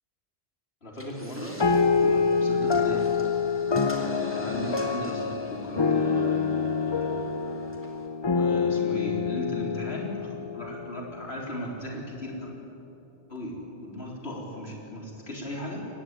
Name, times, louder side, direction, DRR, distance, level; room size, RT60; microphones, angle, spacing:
voice 1, 0.8-3.1 4.0-7.3 8.3-12.5 13.3-15.9, equal, 75° left, -1 dB, 4.3 m, -37 dB
sound 1, 0.9-8.1, equal, 10° left, 3.0 m, -45 dB
sound 2, 1.6-11.3, left 5 dB, 30° left, 0.6 m, -26 dB
23.5 x 19.0 x 9.2 m, 3.0 s
omnidirectional pair, 1.1 m